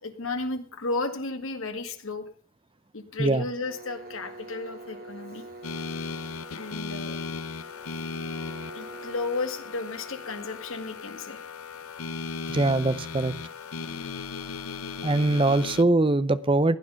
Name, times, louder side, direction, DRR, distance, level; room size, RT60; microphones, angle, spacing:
voice 1, 0.0-2.3 2.9-5.5 6.5-7.2 7.9-8.0 8.7-11.5, left 3 dB, 70° left, 7 dB, 2.0 m, -33 dB
sound 1, 3.6-11.3, right 2 dB, 40° right, 2.8 m, -46 dB
sound 2, 5.6-15.8, left 4 dB, 90° left, 0.8 m, -37 dB
voice 2, 12.5-13.3 15.0-16.8, right 2 dB, 25° right, 15 dB, 0.6 m, -22 dB
16.0 x 9.8 x 5.7 m, 0.44 s
head